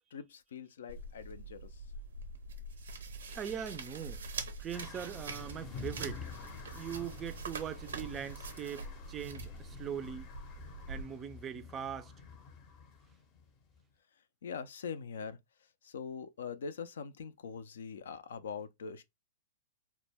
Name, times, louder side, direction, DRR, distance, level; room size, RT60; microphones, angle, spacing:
voice 1, 0.1-1.6 14.4-15.4 15.8-19.0, left 6 dB, 80° left, 0.4 m, -42 dB
sound 1, 0.9-11.0, right 3 dB, 85° right, 0.5 m, -44 dB
voice 2, 3.3-4.2 4.6-6.2 6.7-10.3 10.9-12.1, right 8 dB, 25° right, 0.3 m, -41 dB
sound 2, 4.7-13.8, left 5 dB, 40° left, 0.6 m, -49 dB
2.1 x 2.1 x 3.2 m
hypercardioid pair, 120°, 0 cm